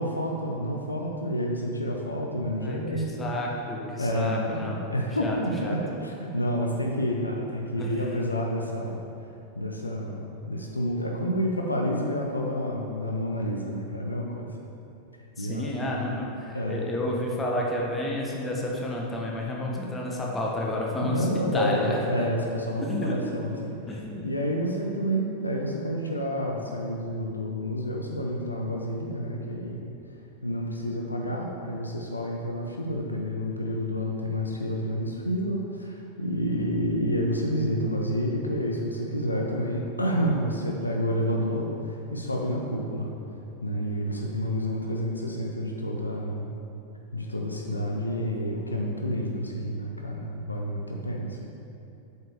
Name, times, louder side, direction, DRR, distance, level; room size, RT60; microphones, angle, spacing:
voice 1, 0.0-3.3 4.0-9.0 9.6-14.4 15.4-16.1 16.5-16.8 21.0-23.8 24.2-29.9 30.4-43.1 43.6-46.5 47.1-51.4, equal, 80° left, 0 dB, 0.7 m, -29 dB
voice 2, 2.6-4.9 5.2-5.4 5.6-5.8 7.8-8.1 15.4-22.3 22.8-23.2 23.9-24.3, left 1 dB, 15° left, -2 dB, 1.3 m, -31 dB
7.5 x 5.7 x 4.6 m, 2.8 s
figure-of-eight pair, 90°, 0 cm